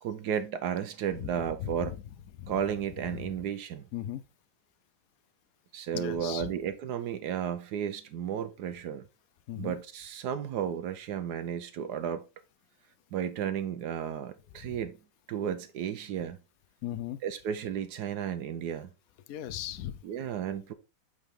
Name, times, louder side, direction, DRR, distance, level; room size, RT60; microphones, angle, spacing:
voice 1, 0.0-1.9 2.5-3.9 5.7-9.1 9.6-12.2 13.1-15.0 15.3-16.4 17.2-18.9 20.0-20.7, right 8 dB, 70° right, 1.1 m, -33 dB
voice 2, 1.6-2.0 2.4-2.5 3.1-3.3 3.9-4.2 5.9-6.5 9.5-9.7 14.7-14.8 16.8-17.2 19.3-20.0, left 12 dB, 80° left, 0.8 m, -37 dB
8.4 x 3.9 x 3.5 m
omnidirectional pair, 2.0 m